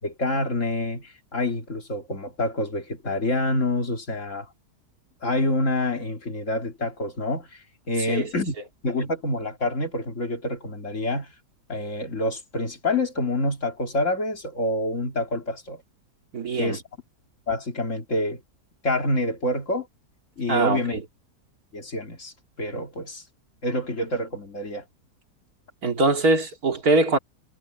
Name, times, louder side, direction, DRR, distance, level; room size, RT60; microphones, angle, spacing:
voice 1, 0.0-4.5 5.2-8.5 8.8-11.3 11.7-15.8 16.6-16.8 17.5-18.4 18.8-19.9 20.4-21.0 21.7-22.3 22.6-23.2 23.6-24.8, left 2 dB, 45° left, 2.9 m, -27 dB
voice 2, 16.3-16.8 20.5-21.0 25.8-27.2, right 3 dB, 60° right, 2.8 m, -22 dB
omnidirectional pair, 1.8 m